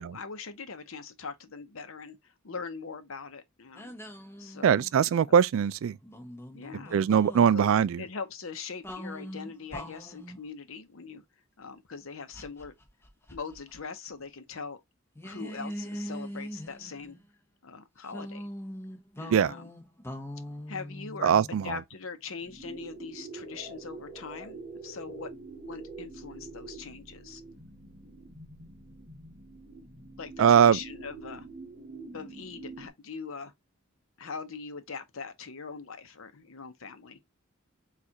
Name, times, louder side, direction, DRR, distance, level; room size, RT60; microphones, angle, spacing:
voice 1, 0.0-4.0 4.4-4.8 5.3-5.4 6.5-7.1 7.5-7.7 8.0-11.2 11.6-12.7 13.3-14.8 15.2-17.2 17.6-18.5 19.2-19.7 20.7-25.3 25.6-27.4 30.2-31.5 32.1-33.5 34.2-37.2, left 5 dB, 75° left, 0.7 m, -41 dB
sound 1, 3.7-5.1 6.0-7.5 8.8-10.4 12.3-13.8 14.1-14.2 15.1-17.3 18.1-21.8, equal, 10° left, 0.9 m, -42 dB
voice 2, 4.6-6.0 6.9-8.0 19.3-19.5 21.2-21.8 30.4-30.8, right 8 dB, 70° right, 0.3 m, -21 dB
sound 2, 22.4-32.9, right 3 dB, 30° right, 2.0 m, -45 dB
6.3 x 2.5 x 2.8 m
head